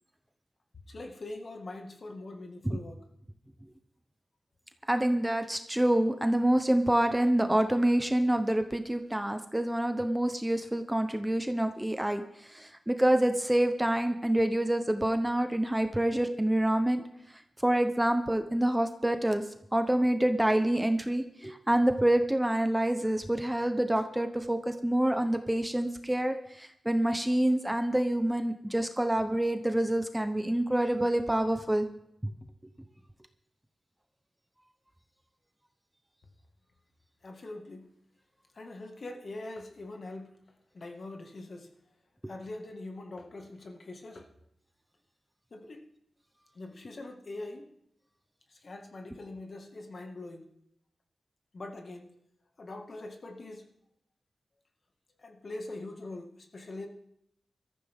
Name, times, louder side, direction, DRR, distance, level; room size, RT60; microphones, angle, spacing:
voice 1, 0.9-3.0 37.2-37.9 38.5-40.4 40.7-41.7 42.2-44.3 45.5-45.9 46.5-47.7 48.5-50.5 51.5-52.1 52.6-53.7 55.2-56.9, left 2 dB, 50° left, 3 dB, 2.0 m, -43 dB
voice 2, 4.9-17.0 17.6-19.4 19.7-31.9 32.2-32.3, right 1 dB, 10° right, 7 dB, 0.9 m, -27 dB
21.5 x 13.5 x 3.7 m, 0.77 s
wide cardioid pair, 115°, 0 cm